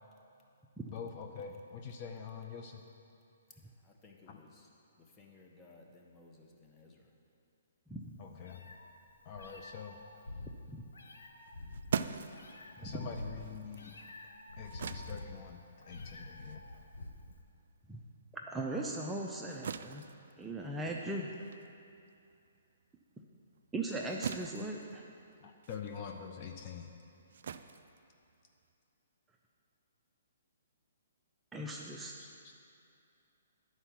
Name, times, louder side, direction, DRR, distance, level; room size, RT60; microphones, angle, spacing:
voice 1, 0.9-2.8 4.3-4.4 8.2-8.6 9.3-10.0 12.8-13.9 14.6-15.6 15.9-16.6 25.4-26.9 32.2-32.5, left 6 dB, 40° left, 3 dB, 0.5 m, -45 dB
voice 2, 3.8-4.7 5.0-7.1, left 3 dB, 15° left, 0 dB, 1.0 m, -59 dB
Meow, 8.0-17.4, left 2 dB, 90° left, 0.7 m, -48 dB
sound 1, 11.4-18.2 18.5-28.7, right 7 dB, 65° right, 0.3 m, -44 dB
voice 3, 18.5-20.0 20.4-21.3 23.7-25.0 31.5-32.1, right 2 dB, 10° right, -1 dB, 0.5 m, -38 dB
10.0 x 4.5 x 5.9 m, 2.6 s
hypercardioid pair, 145°, 0 cm